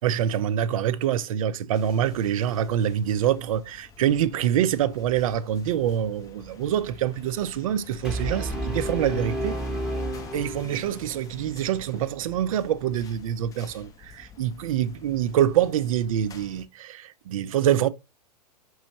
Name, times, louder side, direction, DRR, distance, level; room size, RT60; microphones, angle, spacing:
voice 1, 0.0-9.5 10.3-17.9, right 10 dB, 55° right, 0.5 m, -25 dB
sound 1, 1.7-16.7, left 6 dB, 15° left, 0.6 m, -47 dB
Brass instrument, 8.0-11.1, right 1 dB, 5° right, 0.9 m, -31 dB
5.4 x 3.1 x 2.8 m
figure-of-eight pair, 105°, 21 cm